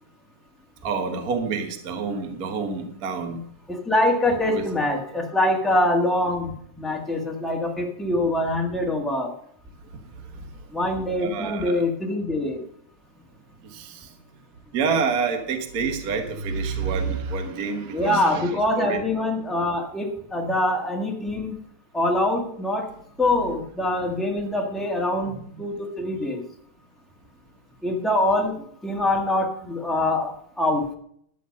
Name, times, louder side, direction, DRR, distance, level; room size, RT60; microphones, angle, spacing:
voice 1, 0.8-3.4 4.5-4.6 10.3-10.5 11.2-11.8 13.6-14.1 14.7-18.5 18.8-19.1 23.4-23.6 25.3-25.4, right 5 dB, 45° right, 5 dB, 1.2 m, -28 dB
voice 2, 3.7-9.3 10.7-12.6 17.9-21.5 21.9-22.8 23.2-26.4 27.8-28.6 28.8-30.9, left 1 dB, ahead, -1 dB, 0.5 m, -24 dB
11.5 x 8.5 x 5.3 m, 0.66 s
omnidirectional pair, 3.5 m